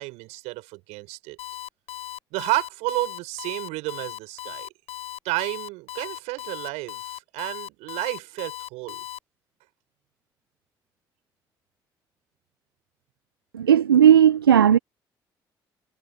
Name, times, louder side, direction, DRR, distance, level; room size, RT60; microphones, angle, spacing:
voice 1, 0.0-1.4 2.3-4.7 5.2-9.0, right 23 dB, 70° right, 7.0 m, -31 dB
Alarm, 1.4-9.2, left 12 dB, 55° left, 6.4 m, -37 dB
voice 2, 13.5-14.8, right 9 dB, 85° right, 0.9 m, -15 dB
figure-of-eight pair, 45°, 12 cm